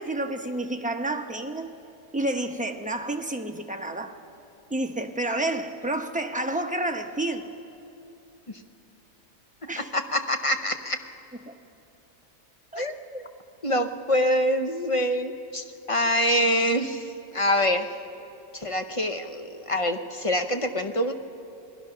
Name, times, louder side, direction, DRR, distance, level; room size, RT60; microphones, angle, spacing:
voice 1, 0.0-1.7 2.1-4.2 4.7-7.5 9.7-9.9 11.5-11.6 12.7-12.9, right 1 dB, 5° right, 4 dB, 0.9 m, -30 dB
voice 2, 9.9-11.0 12.8-13.2 13.6-17.0 17.3-17.9 18.5-21.1, equal, 30° left, 6 dB, 0.8 m, -25 dB
28.0 x 20.0 x 5.8 m, 2.8 s
omnidirectional pair, 1.5 m